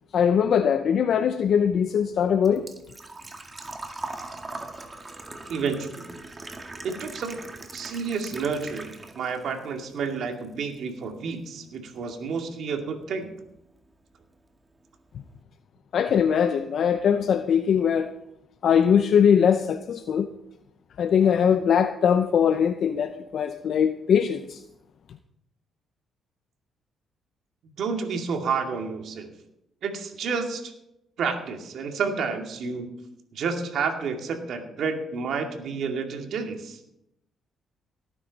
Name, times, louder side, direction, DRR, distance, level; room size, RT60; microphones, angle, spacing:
voice 1, 0.1-2.6 15.9-18.1 18.6-20.3 21.0-24.6, left 7 dB, 60° left, 0.7 m, -21 dB
Engine / Trickle dribble / Fill (with liquid), 1.5-9.4 9.8-10.7 11.0-11.1 13.0-13.1 13.3-13.7 14.0-14.1 14.4-14.5, right 2 dB, 25° right, 2.0 m, -40 dB
voice 2, 5.5-6.1 6.8-7.4 7.7-13.3 27.8-29.3 29.8-30.7 31.2-32.9 33.3-36.8, right 5 dB, 70° right, 2.3 m, -30 dB
18.0 x 9.9 x 4.1 m
cardioid pair, 90°, 0 cm